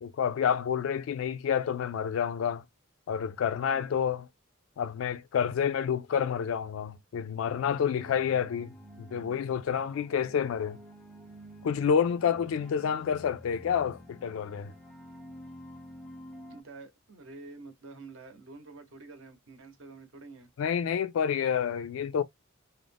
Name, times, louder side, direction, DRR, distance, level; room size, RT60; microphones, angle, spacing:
voice 1, 0.0-2.6 3.1-4.3 4.8-10.8 11.6-14.7 20.6-22.2, left 7 dB, 70° left, 0.3 m, -29 dB
sound 1, 7.5-16.6, equal, 5° left, 0.4 m, -49 dB
voice 2, 16.5-20.5, right 3 dB, 65° right, 0.7 m, -48 dB
2.5 x 2.0 x 3.3 m
head